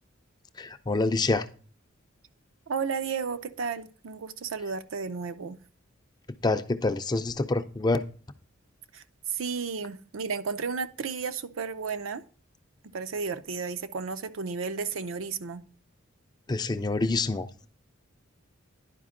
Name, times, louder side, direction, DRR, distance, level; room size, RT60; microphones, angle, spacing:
voice 1, 0.6-1.5 6.4-8.0 16.5-17.5, left 2 dB, 20° left, 0.4 m, -26 dB
voice 2, 2.7-5.6 8.9-12.2 12.9-15.6, right 5 dB, 70° right, 0.5 m, -33 dB
10.5 x 5.1 x 3.7 m
head